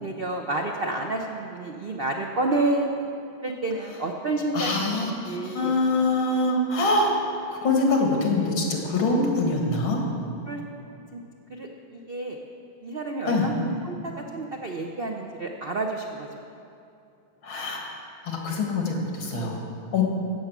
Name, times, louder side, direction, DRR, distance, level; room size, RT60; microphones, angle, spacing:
voice 1, 0.0-2.9 3.4-5.7 10.5-10.6 11.1-11.2 11.5-12.4 12.8-16.3, right 2 dB, 80° right, 2 dB, 0.5 m, -29 dB
voice 2, 4.5-7.1 7.5-10.0 13.2-13.5 17.4-17.8 18.2-19.6 19.9-20.0, left 2 dB, 80° left, 0 dB, 2.6 m, -24 dB
14.5 x 8.0 x 6.1 m, 2.6 s
omnidirectional pair, 2.2 m